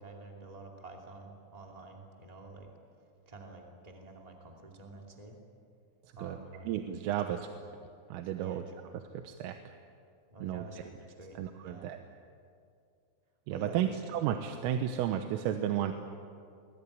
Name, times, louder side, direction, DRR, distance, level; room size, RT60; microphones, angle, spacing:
voice 1, 0.0-2.7 3.2-5.4 6.1-6.7 7.2-7.4 8.4-8.7 10.3-11.9 13.5-14.0, right 2 dB, 60° right, 1 dB, 0.4 m, -49 dB
voice 2, 6.7-7.5 8.1-8.6 9.1-9.6 10.4-10.6 11.4-12.0 13.5-15.9, right 10 dB, 85° right, 6 dB, 3.6 m, -33 dB
26.5 x 21.0 x 9.6 m, 2.5 s
omnidirectional pair, 5.9 m